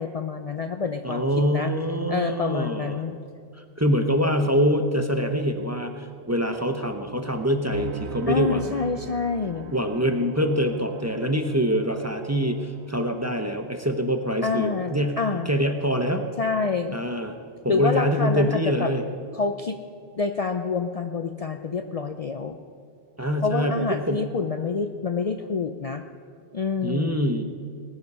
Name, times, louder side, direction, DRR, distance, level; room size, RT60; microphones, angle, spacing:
voice 1, 0.0-1.2 1.5-1.7 2.1-3.2 8.3-9.7 14.4-15.5 16.4-17.0 17.7-18.9 19.3-19.8 20.2-22.6 23.4-26.0 26.5-27.3, left 4 dB, 45° left, 7 dB, 0.5 m, -27 dB
voice 2, 1.0-3.0 3.8-8.8 9.7-15.2 15.5-16.3 16.9-17.4 17.6-19.0 23.2-24.2 26.8-27.4, equal, 15° right, 6 dB, 0.7 m, -24 dB
sound 1, 7.7-16.1, right 5 dB, 80° right, 1.2 m, -42 dB
19.5 x 9.6 x 5.5 m, 2.3 s
omnidirectional pair, 1.1 m